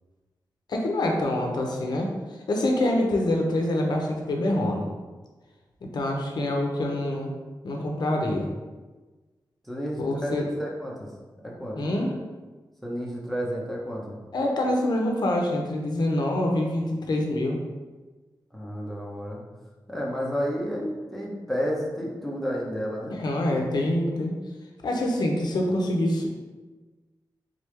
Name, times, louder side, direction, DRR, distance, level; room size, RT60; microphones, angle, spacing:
voice 1, 0.7-4.9 5.8-7.3 7.6-8.5 10.0-10.5 11.8-12.1 14.3-17.6 23.1-24.3 24.8-26.3, left 1 dB, 70° left, 1 dB, 0.6 m, -26 dB
voice 2, 9.6-11.1 11.4-11.8 12.8-14.2 18.5-19.4 19.9-23.2, equal, ahead, -4 dB, 0.7 m, -31 dB
3.7 x 3.3 x 3.3 m, 1.3 s
wide cardioid pair, 145°, 8 cm